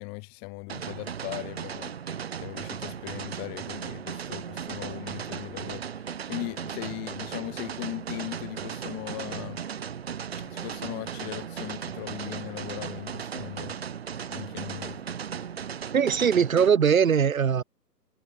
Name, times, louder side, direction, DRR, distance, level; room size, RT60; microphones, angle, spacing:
voice 1, 0.0-1.9 2.4-6.0 6.3-9.6 10.4-13.7 14.3-15.0, left 34 dB, 15° left, 4.2 m, -38 dB
sound 1, 0.7-16.7, right 8 dB, 40° right, 1.2 m, -36 dB
voice 2, 15.9-17.6, right 7 dB, 55° right, 1.0 m, -21 dB
figure-of-eight pair, 145°, 50 cm